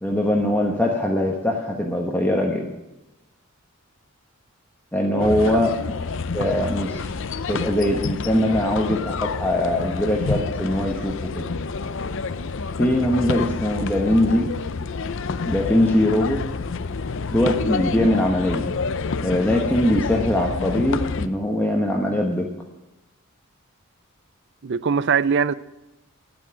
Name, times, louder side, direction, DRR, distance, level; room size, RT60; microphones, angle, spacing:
voice 1, 0.0-2.7 4.9-5.7 6.3-7.2 7.5-11.4 12.8-14.5 15.4-16.4 17.3-18.6 19.2-22.4, left 1 dB, 10° left, 1.1 m, -21 dB
voice 2, 5.1-5.7 24.6-25.5, right 6 dB, 55° right, 0.5 m, -22 dB
sound 1, 5.2-21.3, left 4 dB, 60° left, 0.6 m, -28 dB
9.4 x 9.0 x 9.8 m
head